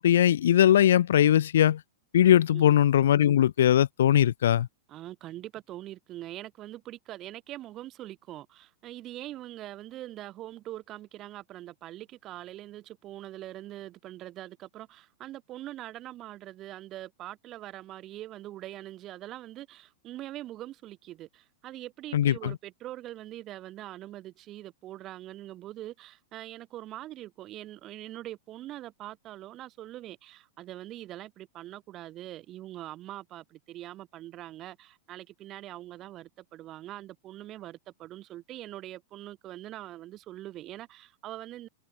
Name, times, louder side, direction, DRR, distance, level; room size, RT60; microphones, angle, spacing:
voice 1, 0.0-1.8 2.1-4.7 22.1-22.5, left 11 dB, 75° left, 0.6 m, -20 dB
voice 2, 4.9-41.7, right 14 dB, 35° right, 3.0 m, -43 dB
hypercardioid pair, 115°, 0 cm